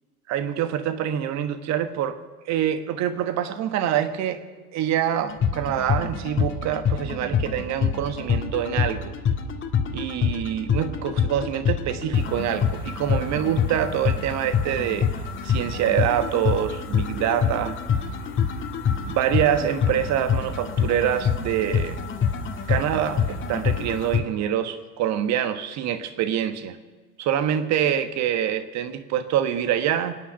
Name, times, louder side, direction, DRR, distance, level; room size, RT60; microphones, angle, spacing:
voice 1, 0.3-2.2 2.4-4.4 4.7-9.1 9.9-15.1 15.4-17.8 19.0-22.0 22.7-26.8 27.2-30.2, right 10 dB, 35° right, 1.4 m, -25 dB
sound 1, 5.3-24.2, left 7 dB, 25° left, 1.8 m, -26 dB
25.0 x 10.0 x 5.7 m
figure-of-eight pair, 80°, 45 cm